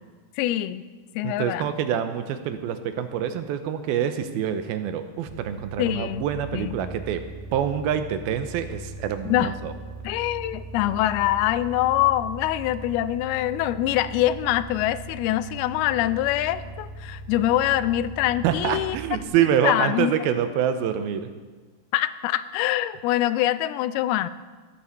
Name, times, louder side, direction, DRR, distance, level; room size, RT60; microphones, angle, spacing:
voice 1, 0.4-0.8 1.2-1.7 5.8-6.2 6.5-6.7 9.3-9.5 10.0-19.0 19.4-20.1 21.9-24.3, left 13 dB, 90° left, 14 dB, 2.5 m, -24 dB
voice 2, 1.2-7.2 7.5-9.7 18.4-21.3, right 9 dB, 85° right, 9 dB, 2.6 m, -26 dB
sound 1, 5.3-19.2, right 2 dB, 65° right, 2.0 m, -39 dB
14.5 x 9.4 x 6.7 m, 1.4 s
omnidirectional pair, 4.4 m